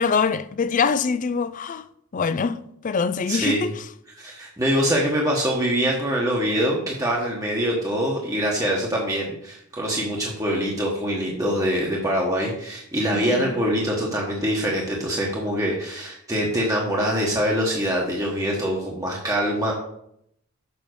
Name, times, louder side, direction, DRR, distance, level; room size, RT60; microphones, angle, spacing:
voice 1, 0.0-1.9 2.1-3.9 13.1-13.6, left 5 dB, 35° left, 0.4 m, -24 dB
voice 2, 3.3-3.6 4.2-19.7, equal, 15° right, 1.1 m, -24 dB
7.0 x 5.1 x 6.4 m
head